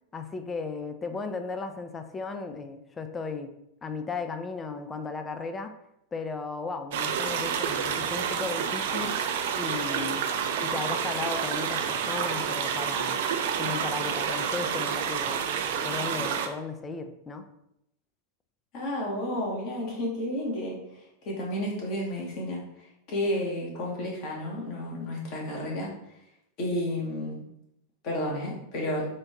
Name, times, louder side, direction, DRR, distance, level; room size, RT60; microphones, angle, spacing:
voice 1, 0.1-3.5 3.8-5.7 6.1-9.2 9.5-10.2 10.6-13.2 13.6-15.4 15.8-17.5, left 4 dB, 20° left, 7 dB, 0.4 m, -35 dB
sound 1, 6.9-16.5, right 7 dB, 55° right, 0.4 m, -29 dB
voice 2, 18.7-25.9 26.6-27.4 28.0-29.1, left 1 dB, 40° left, -3 dB, 1.3 m, -32 dB
3.7 x 2.6 x 3.5 m, 0.80 s
figure-of-eight pair, 90°, 0 cm